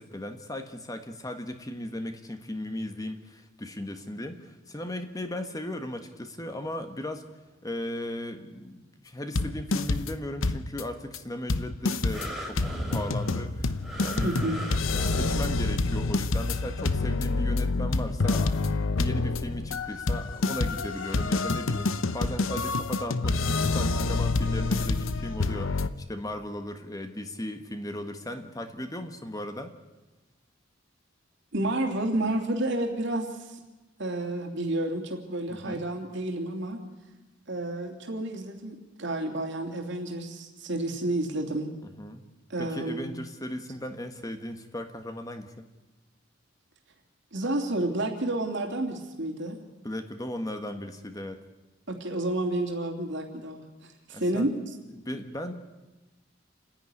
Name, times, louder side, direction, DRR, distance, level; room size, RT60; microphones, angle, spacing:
voice 1, 0.0-7.2 7.6-14.5 15.0-18.6 18.9-29.7 35.5-35.8 41.8-42.2 42.6-45.7 49.8-51.4 54.1-54.5 54.9-55.5, left 1 dB, 20° left, 6 dB, 1.4 m, -37 dB
sound 1, 9.4-10.2 10.4-10.8 11.1-11.2 11.5-25.9, left 3 dB, 90° left, 0.9 m, -27 dB
sound 2, 12.1-16.0 16.7-16.8, equal, ahead, 3.6 m, -37 dB
voice 2, 14.2-14.6 31.5-33.6 34.0-36.8 37.5-41.7 42.5-43.2 47.3-49.6 51.9-54.6, right 1 dB, 65° right, 2 dB, 2.9 m, -30 dB
29.0 x 10.5 x 9.8 m, 1.1 s
head